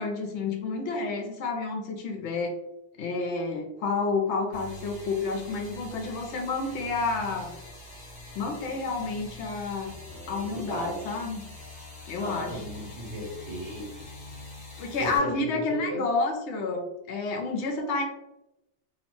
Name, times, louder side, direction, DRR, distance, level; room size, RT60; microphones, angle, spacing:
voice 1, 0.0-2.5 3.0-7.6 8.3-10.0 10.3-11.4 12.1-12.6 14.8-18.0, left 3 dB, 70° left, 3 dB, 0.9 m, -30 dB
sound 1, 4.5-15.2, left 1 dB, 35° left, 0.9 m, -44 dB
voice 2, 10.1-11.1 12.2-13.9 15.0-16.0, equal, 55° right, -5 dB, 1.3 m, -36 dB
2.8 x 2.0 x 3.0 m, 0.91 s
omnidirectional pair, 1.3 m